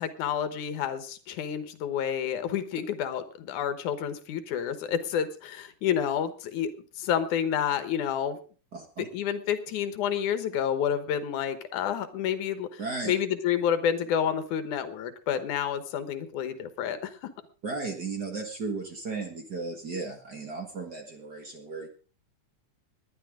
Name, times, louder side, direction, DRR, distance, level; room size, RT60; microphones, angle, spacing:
voice 1, 0.0-6.7 7.0-8.4 9.1-17.3, left 9 dB, 80° left, 11 dB, 2.6 m, -29 dB
voice 2, 8.7-9.1 12.8-13.1 17.6-21.9, right 4 dB, 40° right, 3 dB, 1.9 m, -35 dB
20.0 x 10.5 x 3.7 m, 0.39 s
omnidirectional pair, 3.5 m